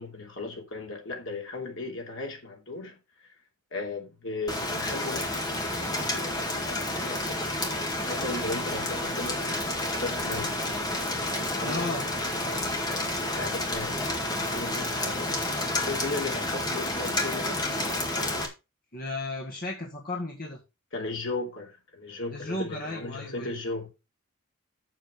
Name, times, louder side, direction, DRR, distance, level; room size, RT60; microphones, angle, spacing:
voice 1, 0.0-3.3 3.7-7.5 8.1-10.5 11.3-13.1 13.4-14.0 14.3-15.4 15.8-17.6 20.9-23.9, left 3 dB, 65° left, 3.0 m, -37 dB
Rain, 4.5-18.5, left 1 dB, 20° left, 1.9 m, -30 dB
voice 2, 11.6-12.0 18.9-20.6 22.3-23.6, left 2 dB, 45° left, 1.8 m, -34 dB
7.8 x 7.4 x 5.0 m
head